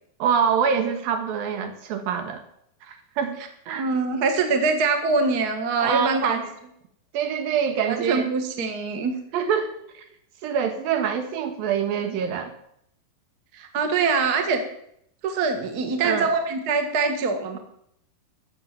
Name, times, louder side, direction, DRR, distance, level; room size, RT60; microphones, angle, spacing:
voice 1, 0.2-2.4 2.8-3.8 5.8-6.5 7.1-8.3 9.3-10.1 10.4-12.5 16.0-16.3, right 7 dB, 80° right, 6 dB, 3.2 m, -25 dB
voice 2, 3.7-6.4 7.9-9.1 13.5-14.6 15.2-17.6, right 4 dB, 40° right, 5 dB, 1.5 m, -24 dB
14.0 x 7.0 x 8.3 m, 0.73 s
omnidirectional pair, 4.1 m